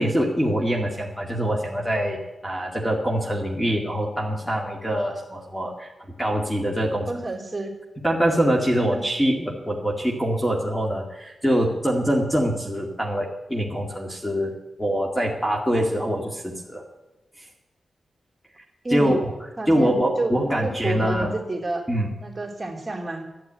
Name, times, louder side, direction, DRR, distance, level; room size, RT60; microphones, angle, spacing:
voice 1, 0.0-5.9 6.2-7.2 8.0-16.8 18.9-19.3 19.7-21.3 21.9-22.1, equal, 5° left, 0 dB, 2.2 m, -24 dB
voice 2, 7.1-7.7 18.8-19.2 19.6-20.3 20.6-21.9 22.2-23.2, right 2 dB, 25° right, 1 dB, 3.3 m, -29 dB
12.0 x 10.5 x 8.9 m, 1.0 s
cardioid pair, 70°, 0 cm